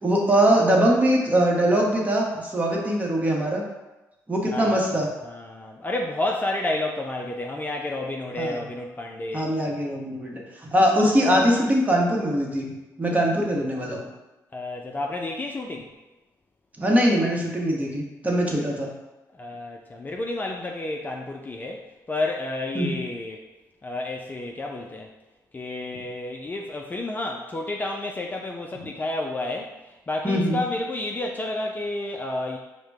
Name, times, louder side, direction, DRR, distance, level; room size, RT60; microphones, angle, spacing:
voice 1, 0.0-3.6 4.3-5.1 8.4-8.6 9.3-10.4 10.7-12.7 13.0-14.1 16.8-18.9 22.7-23.0 30.2-30.6, equal, 20° right, -1 dB, 1.0 m, -22 dB
voice 2, 4.5-4.8 5.2-9.5 14.5-15.9 19.3-23.4 23.8-25.1 25.5-29.7 30.1-32.6, left 2 dB, 25° left, 0 dB, 0.4 m, -30 dB
4.9 x 2.2 x 3.4 m, 1.0 s
supercardioid pair, 65°, 7 cm